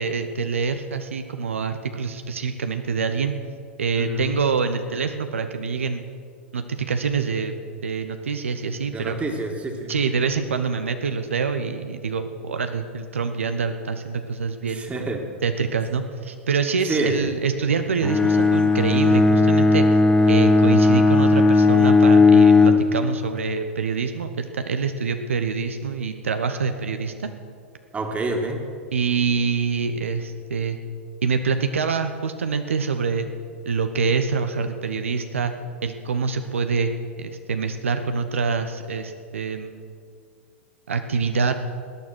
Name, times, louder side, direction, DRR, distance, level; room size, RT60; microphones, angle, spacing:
voice 1, 0.0-3.3 3.8-6.1 6.5-7.5 7.8-9.2 9.9-14.9 15.4-19.9 20.3-27.3 28.9-30.8 31.2-33.3 33.6-35.5 35.8-36.9 37.2-39.8 40.9-41.5, right 5 dB, 80° right, 8 dB, 0.9 m, -25 dB
voice 2, 3.9-4.3 8.9-9.9 14.7-15.2 16.9-17.3 27.9-28.6, right 2 dB, 20° right, 3 dB, 2.2 m, -27 dB
Bowed string instrument, 18.0-22.9, left 3 dB, 10° left, 1.1 m, -16 dB
20.5 x 9.5 x 6.2 m, 2.3 s
figure-of-eight pair, 100°, 7 cm